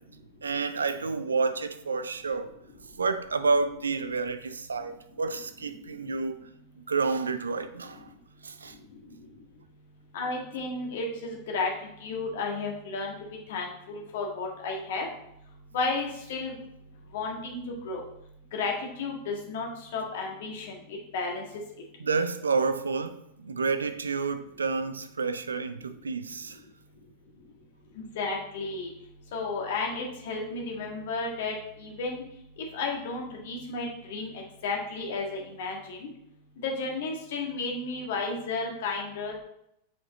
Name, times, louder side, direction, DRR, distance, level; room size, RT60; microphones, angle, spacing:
voice 1, 0.4-2.5 2.9-6.4 6.9-8.1 8.4-8.8 22.0-26.6, right 4 dB, 75° right, 0.5 m, -29 dB
voice 2, 10.1-11.7 12.0-13.1 13.5-15.1 15.7-16.5 17.1-17.6 17.8-18.0 18.5-20.8 21.1-21.4 28.1-28.9 29.3-32.2 32.7-34.3 34.6-36.1 36.6-39.3, left 3 dB, 55° left, 1.6 m, -32 dB
6.8 x 5.1 x 4.0 m
figure-of-eight pair, 90°, 0 cm